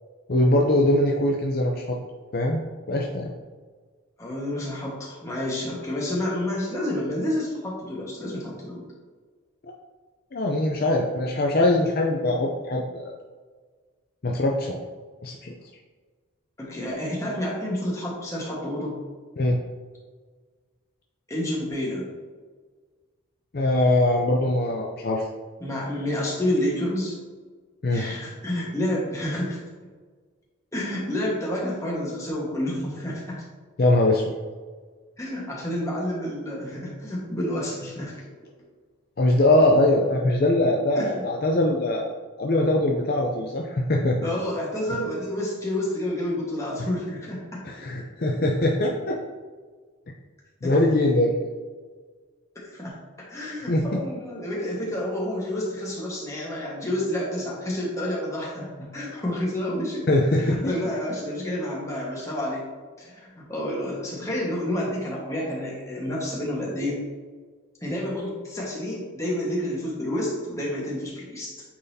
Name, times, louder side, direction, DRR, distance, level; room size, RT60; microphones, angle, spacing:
voice 1, 0.3-2.0 2.3-2.6 2.9-3.3 10.3-13.1 14.2-14.8 15.2-15.5 19.4-19.6 23.5-25.3 27.8-28.1 33.8-34.4 39.2-42.1 42.4-44.3 47.6-49.2 50.6-51.4 53.7-54.0 60.1-60.7, left 1 dB, 45° left, 0 dB, 0.5 m, -22 dB
voice 2, 4.2-8.8 16.6-19.0 21.3-22.1 25.6-27.2 27.9-29.6 30.7-33.4 35.2-38.1 41.0-41.2 44.2-47.6 50.6-50.8 52.5-53.0 53.3-60.1 60.4-62.6 63.0-67.0 67.8-71.5, left 1 dB, 15° left, -4 dB, 1.3 m, -29 dB
8.5 x 4.0 x 2.7 m, 1.5 s
head